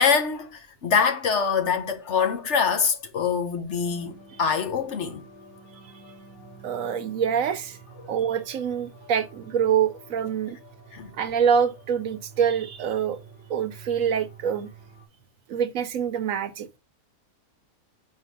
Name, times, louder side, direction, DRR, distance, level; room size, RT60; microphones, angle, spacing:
voice 1, 0.0-5.2 8.0-8.1 10.9-11.1, left 6 dB, 55° left, 1.1 m, -24 dB
sound 1, 3.8-15.1, right 3 dB, 20° left, 2.3 m, -48 dB
voice 2, 6.6-7.8 8.1-10.6 11.1-13.2 13.5-14.7 15.5-16.7, right 7 dB, 70° right, 1.0 m, -25 dB
4.7 x 4.0 x 5.2 m
omnidirectional pair, 1.6 m